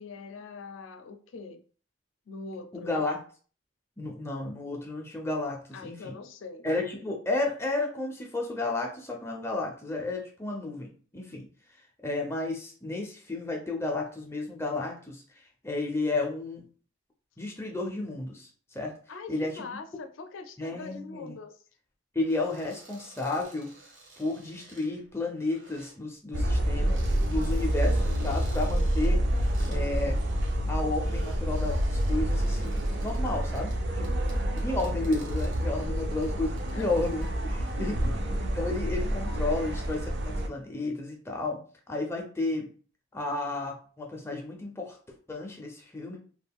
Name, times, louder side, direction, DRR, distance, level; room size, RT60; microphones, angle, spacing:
voice 1, 0.0-1.6 2.3-2.9 5.7-6.7 19.1-21.6 34.0-34.7 36.7-36.9 37.4-38.4, left 4 dB, 85° left, 8 dB, 0.4 m, -43 dB
voice 2, 2.7-3.2 4.0-6.1 6.6-11.5 12.0-15.2 15.6-16.6 17.4-18.9 19.3-19.6 20.6-21.4 22.1-23.7 24.2-30.2 30.7-34.1 34.6-37.3 37.8-37.9 38.6-41.6 41.9-42.7 43.1-45.0 45.3-46.2, left 2 dB, 15° left, 1 dB, 0.4 m, -32 dB
sound 1, 22.2-26.0 26.7-30.6 30.9-37.8 38.2-38.7, right 2 dB, 80° right, 1.1 m, -53 dB
sound 2, 26.3-40.5, right 1 dB, 55° right, 0.4 m, -28 dB
2.4 x 2.2 x 3.5 m, 0.42 s
head